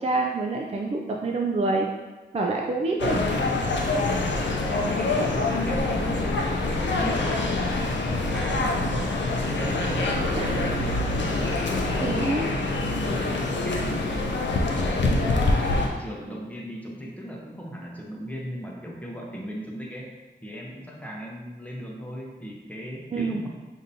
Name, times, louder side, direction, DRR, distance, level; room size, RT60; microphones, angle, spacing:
voice 1, 0.0-1.9 2.3-3.2 10.4-10.6 12.0-12.5 23.1-23.4, right 3 dB, 35° right, 0 dB, 0.4 m, -26 dB
sound 1, 3.0-15.9, left 2 dB, 90° left, 0.5 m, -25 dB
voice 2, 4.0-12.1 12.9-14.3 14.8-15.0 15.2-20.2 20.4-23.5, equal, 10° left, -2 dB, 0.8 m, -37 dB
5.0 x 2.7 x 2.7 m, 1.2 s
wide cardioid pair, 70°, 18 cm